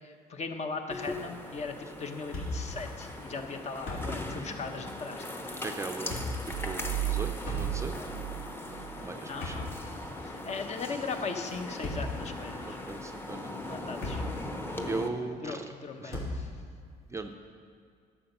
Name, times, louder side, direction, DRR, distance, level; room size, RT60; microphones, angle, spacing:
voice 1, 0.0-5.6 8.0-8.1 8.7-9.7 10.2-12.8 13.6-14.2 15.4-16.5, left 4 dB, 40° left, 5 dB, 1.0 m, -39 dB
sound 1, 0.9-15.1, left 1 dB, 15° left, 0.9 m, -40 dB
Thump thud, 2.3-2.8 3.1-3.2 3.7-4.4 4.7-4.9 5.8-6.5 7.4-8.1 9.2-10.2 11.6-12.3 13.0-13.1 13.7-14.5 14.7-14.9 16.1-16.5, left 2 dB, 75° left, 3.1 m, -37 dB
voice 2, 5.6-6.2 6.6-7.9 9.0-9.5 12.7-13.6 14.9-15.7 16.0-16.2 17.1-17.4, right 3 dB, 15° right, 5 dB, 0.5 m, -38 dB
sound 2, 6.5-9.1, right 15 dB, 80° right, 0.4 m, -34 dB
11.0 x 7.1 x 5.5 m, 2.1 s
cardioid pair, 110°, 17 cm